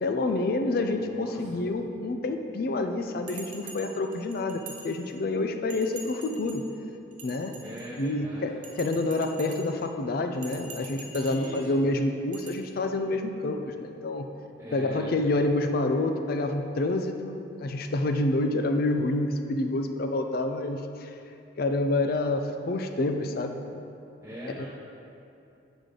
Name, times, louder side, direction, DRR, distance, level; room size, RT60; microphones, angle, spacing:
voice 1, 0.0-6.7 7.2-7.6 8.0-8.5 8.8-14.3 14.7-21.1 21.6-23.6 24.6-24.7, left 2 dB, 50° left, 6 dB, 0.4 m, -28 dB
voice 2, 1.0-1.6 7.6-8.5 8.9-9.1 11.1-11.7 14.6-15.2 24.2-24.6, right 1 dB, 10° right, -10 dB, 0.8 m, -42 dB
Bell, 3.3-5.3 5.7-6.7 7.1-8.1 8.6-9.9 10.3-11.7 12.3-12.5, right 4 dB, 40° right, 0.8 m, -45 dB
7.9 x 5.0 x 3.8 m, 2.6 s
head